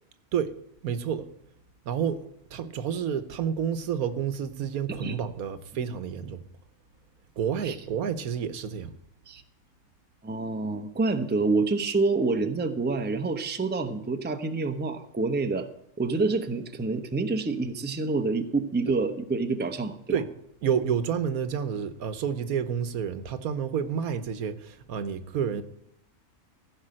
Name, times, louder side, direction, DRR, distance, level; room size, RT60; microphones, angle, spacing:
voice 1, 0.8-1.3 1.8-6.4 7.4-8.9 20.1-20.3 20.6-25.6, right 8 dB, 85° right, 1.4 m, -29 dB
voice 2, 10.2-15.7 16.0-20.2, right 3 dB, 10° right, 0.6 m, -27 dB
15.5 x 5.4 x 7.6 m
omnidirectional pair, 1.5 m